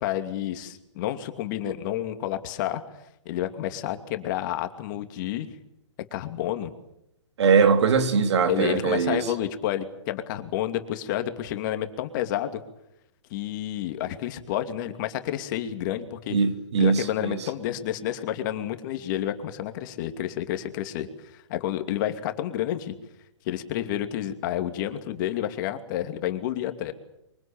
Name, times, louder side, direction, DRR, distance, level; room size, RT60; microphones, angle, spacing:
voice 1, 0.0-2.8 3.2-5.5 6.1-6.7 8.5-12.6 13.3-16.4 16.8-21.1 21.3-22.9 23.4-26.9, left 12 dB, 40° left, 2.6 m, -30 dB
voice 2, 7.4-9.2 16.3-17.4, right 5 dB, 65° right, 2.9 m, -21 dB
24.0 x 23.0 x 8.8 m
hypercardioid pair, 130°, 15 cm